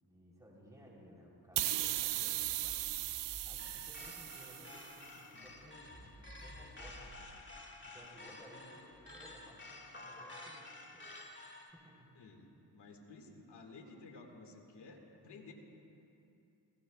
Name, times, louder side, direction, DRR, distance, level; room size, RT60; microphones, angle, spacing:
voice 1, 0.0-2.8 3.4-11.4 11.7-12.1, equal, 10° right, -4 dB, 3.4 m, -58 dB
sound 1, 1.6-4.9, right 13 dB, 90° right, 0.5 m, -37 dB
sound 2, 2.4-9.4, right 1 dB, 25° right, 4.3 m, -57 dB
sound 3, 3.6-11.7, left 2 dB, 25° left, 2.0 m, -52 dB
voice 2, 5.1-5.6 12.2-15.5, left 3 dB, 80° left, 1 dB, 1.9 m, -54 dB
28.0 x 17.0 x 2.3 m, 2.8 s
cardioid pair, 55°, 41 cm